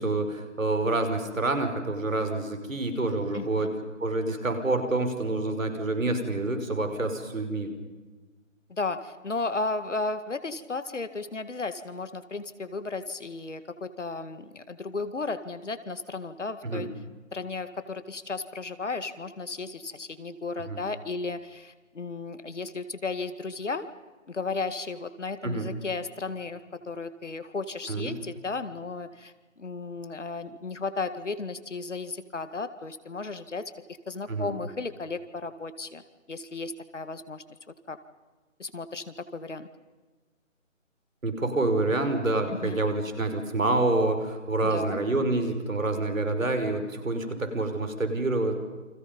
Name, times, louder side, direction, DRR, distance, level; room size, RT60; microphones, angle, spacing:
voice 1, 0.0-3.7 4.0-7.7 16.6-16.9 20.7-20.8 25.4-25.7 27.9-28.1 34.3-34.5 41.2-48.5, right 2 dB, 75° right, 6 dB, 5.5 m, -27 dB
voice 2, 3.3-3.7 8.7-16.9 17.3-23.9 24.3-33.7 34.1-36.0 36.3-37.4 37.9-38.0 38.6-39.7 42.5-42.8 44.6-45.0, left 3 dB, 60° left, 10 dB, 2.2 m, -34 dB
29.5 x 26.0 x 5.4 m, 1.3 s
figure-of-eight pair, 175°, 40 cm